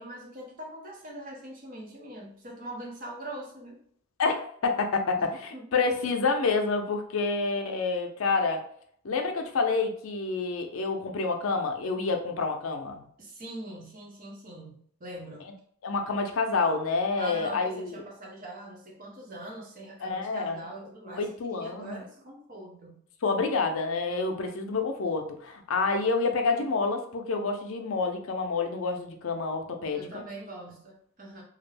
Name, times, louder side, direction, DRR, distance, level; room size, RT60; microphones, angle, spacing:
voice 1, 0.0-3.8 5.2-5.7 7.1-7.2 13.2-15.5 17.2-23.0 29.9-31.4, right 1 dB, 40° right, -1 dB, 0.7 m, -43 dB
voice 2, 4.2-8.7 9.0-13.0 15.8-18.0 20.0-20.6 21.1-22.0 23.2-30.2, left 4 dB, 75° left, 5 dB, 0.5 m, -28 dB
2.3 x 2.1 x 3.2 m, 0.62 s
head